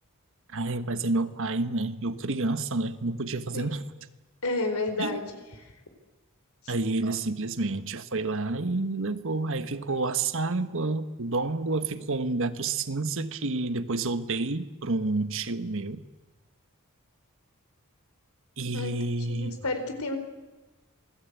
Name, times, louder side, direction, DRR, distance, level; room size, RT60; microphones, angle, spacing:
voice 1, 0.5-3.8 5.0-5.2 6.7-16.0 18.6-19.6, right 3 dB, 60° right, 1.3 m, -29 dB
voice 2, 4.4-5.4 6.6-6.7 18.7-20.2, left 2 dB, 75° left, 4.4 m, -31 dB
27.5 x 20.0 x 8.3 m
head